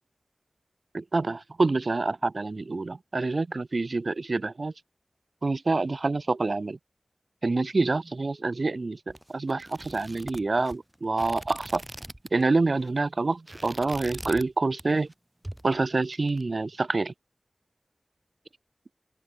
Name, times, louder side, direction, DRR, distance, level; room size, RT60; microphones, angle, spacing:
voice 1, 0.9-4.7 5.4-6.8 7.4-9.0 9.3-11.8 12.3-15.1 15.6-17.1, right 3 dB, 70° right, 2.1 m, -27 dB
sound 1, 9.1-12.5 12.7-13.0 13.3-14.5 14.8-15.1 15.4-16.4, right 1 dB, 20° right, 3.5 m, -42 dB
wide cardioid pair, 45°, 0 cm